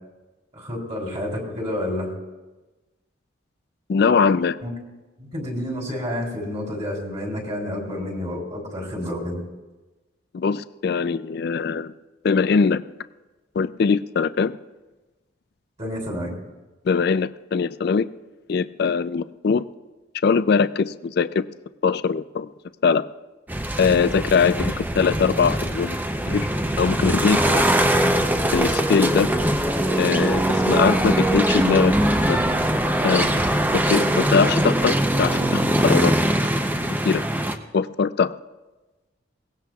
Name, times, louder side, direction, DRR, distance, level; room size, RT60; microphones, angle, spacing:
voice 1, 0.5-2.1 4.6-4.7 5.2-9.4 15.8-16.3, left 1 dB, 35° right, -1 dB, 3.2 m, -29 dB
voice 2, 3.9-4.6 10.3-11.9 12.2-12.8 13.6-14.6 16.9-18.1 18.5-19.6 20.2-21.5 21.8-22.5 22.8-23.1 23.8-26.0 26.3-26.5 26.8-27.6 28.5-29.3 30.0-31.9 32.2-32.4 33.0-36.2 37.0-37.2 37.7-38.3, left 5 dB, 55° left, 14 dB, 0.3 m, -21 dB
sound 1, 23.5-37.6, right 1 dB, 10° right, 0.5 m, -22 dB
22.0 x 18.0 x 2.3 m, 1.2 s
head